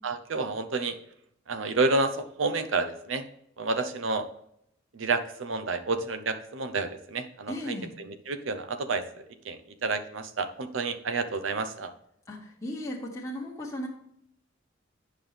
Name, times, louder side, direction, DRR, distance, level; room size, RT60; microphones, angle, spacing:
voice 1, 0.0-1.0 1.5-3.2 3.6-4.3 4.9-9.0 9.4-11.9, right 3 dB, 70° right, 9 dB, 0.7 m, -30 dB
voice 2, 7.5-7.9 12.3-13.9, left 1 dB, 15° left, -3 dB, 1.3 m, -36 dB
9.0 x 5.7 x 3.4 m, 0.73 s
head